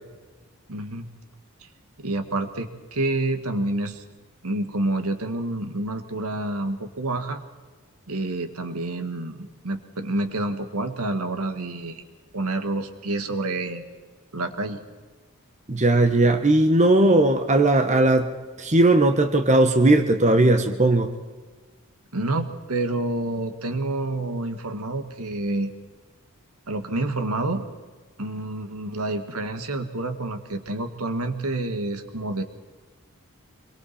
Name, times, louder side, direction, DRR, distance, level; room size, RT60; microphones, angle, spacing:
voice 1, 0.7-1.1 2.0-4.0 4.4-7.4 8.1-9.4 9.6-12.0 12.3-13.8 14.3-14.8 22.1-25.7 26.7-27.6 28.2-32.4, right 2 dB, 80° right, 1.9 m, -28 dB
voice 2, 15.7-18.3 18.6-21.1, right 2 dB, 35° right, 1.3 m, -18 dB
26.5 x 23.0 x 4.4 m
head